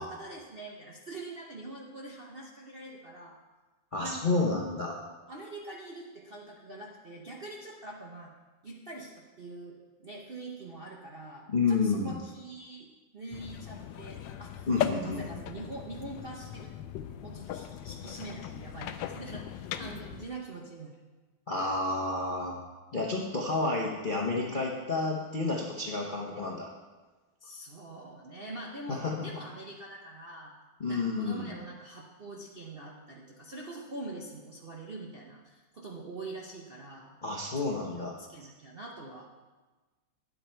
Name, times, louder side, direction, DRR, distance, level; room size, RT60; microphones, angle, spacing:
voice 1, 0.0-3.4 4.0-4.4 5.3-8.3 8.6-12.9 13.1-16.9 17.2-21.0 27.4-30.6 30.9-37.2 37.5-37.7 37.9-39.3, right 2 dB, 50° right, -2 dB, 0.6 m, -44 dB
voice 2, 3.9-5.0 11.5-12.1 14.7-15.2 21.5-22.5 22.9-26.7 28.9-29.1 30.8-31.5 37.2-38.1, left 3 dB, 45° left, -2 dB, 0.6 m, -30 dB
sound 1, 13.3-20.3, left 9 dB, 75° left, 1.2 m, -38 dB
10.0 x 7.9 x 4.5 m, 1.3 s
omnidirectional pair, 2.2 m